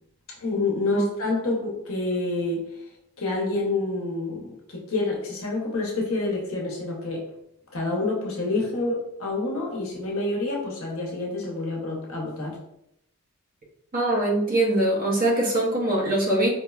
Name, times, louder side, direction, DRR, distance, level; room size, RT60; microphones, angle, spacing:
voice 1, 0.4-2.7 3.2-7.2 7.7-12.6, left 2 dB, 65° left, -3 dB, 1.0 m, -28 dB
voice 2, 13.9-16.5, right 1 dB, 40° right, -2 dB, 0.8 m, -22 dB
4.7 x 2.2 x 2.3 m, 0.75 s
head